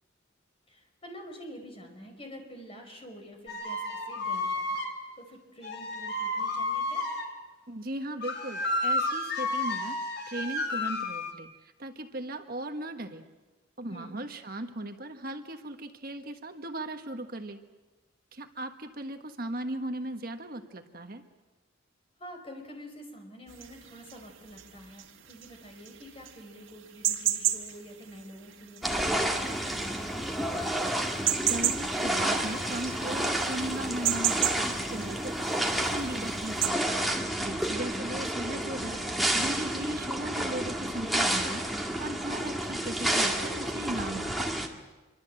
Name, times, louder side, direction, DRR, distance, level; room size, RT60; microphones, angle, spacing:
voice 1, 0.7-4.8 5.2-7.0 13.9-14.2 22.2-30.9 37.9-38.0, equal, 30° left, 3 dB, 4.9 m, -47 dB
sound 1, 3.5-5.0 5.6-7.3 8.2-11.3, left 2 dB, 60° left, 3.4 m, -31 dB
voice 2, 7.7-10.0 10.3-13.2 13.8-17.6 18.3-21.2 31.4-36.9 37.2-41.6 42.0-44.4, right 1 dB, 45° right, 6 dB, 1.4 m, -37 dB
sound 2, 23.5-36.7, right 11 dB, 80° right, 1.9 m, -33 dB
sound 3, 28.8-44.7, right 1 dB, ahead, 2.0 m, -30 dB
25.5 x 24.5 x 7.7 m, 1.2 s
head